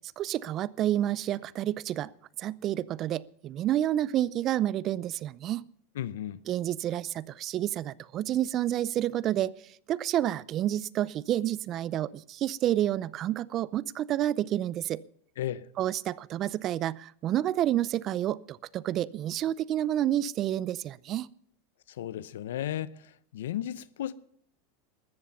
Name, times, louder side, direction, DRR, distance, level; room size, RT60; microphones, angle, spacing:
voice 1, 0.2-2.1 2.4-5.6 6.5-9.5 9.9-15.0 15.8-21.3, right 12 dB, 40° right, 0.5 m, -29 dB
voice 2, 6.0-6.4 15.4-15.6 22.0-22.9 23.3-24.1, left 11 dB, 80° left, 0.7 m, -34 dB
14.0 x 13.0 x 5.5 m
hypercardioid pair, 115°, 0 cm